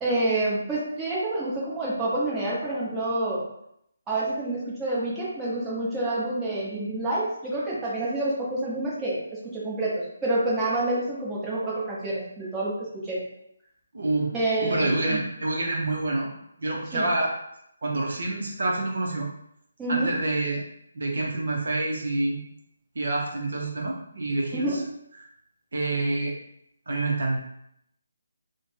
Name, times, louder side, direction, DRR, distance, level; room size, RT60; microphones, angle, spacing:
voice 1, 0.0-3.4 4.1-13.2 14.3-15.2 16.9-17.0 19.8-20.1 24.5-24.8, right 2 dB, 10° right, -8 dB, 0.8 m, -28 dB
voice 2, 13.9-16.3 16.6-17.3 17.8-19.3 19.9-20.6 20.9-22.4 22.9-24.8 25.2-25.3 25.7-26.3 26.9-27.4, right 2 dB, 60° right, -1 dB, 0.6 m, -27 dB
2.5 x 2.1 x 3.2 m, 0.75 s
figure-of-eight pair, 150°, 0 cm